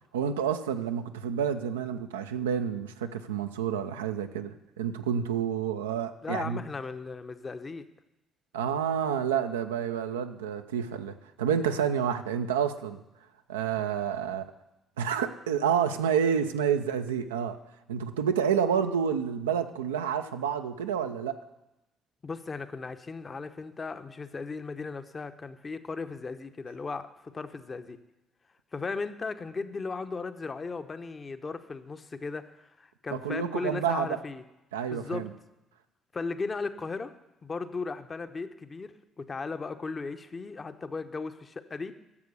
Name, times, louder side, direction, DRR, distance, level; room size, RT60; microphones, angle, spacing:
voice 1, 0.1-6.6 8.5-13.0 13.5-14.5 15.0-17.6 17.9-21.4 33.1-34.2 34.7-35.3, right 8 dB, 90° right, 7 dB, 0.5 m, -29 dB
voice 2, 6.2-7.9 22.2-28.0 28.7-34.4 34.9-35.3 36.1-37.1 37.4-41.9, left 4 dB, 35° left, 10 dB, 0.8 m, -36 dB
11.0 x 6.8 x 6.7 m, 0.95 s
hypercardioid pair, 50°, 0 cm